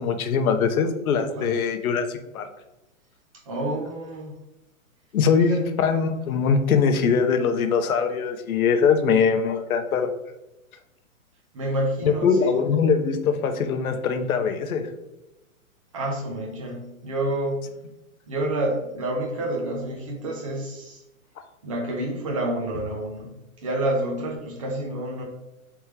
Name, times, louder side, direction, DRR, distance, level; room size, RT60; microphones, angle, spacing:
voice 1, 0.0-2.5 5.1-10.1 12.0-14.9, left 6 dB, 85° left, 7 dB, 0.6 m, -22 dB
voice 2, 3.5-4.3 5.5-5.6 11.5-12.5 15.9-17.6 18.3-21.0 21.6-23.3 23.6-25.2, right 1 dB, 25° right, -1 dB, 0.5 m, -28 dB
3.4 x 3.2 x 3.0 m, 0.94 s
hypercardioid pair, 160°, 42 cm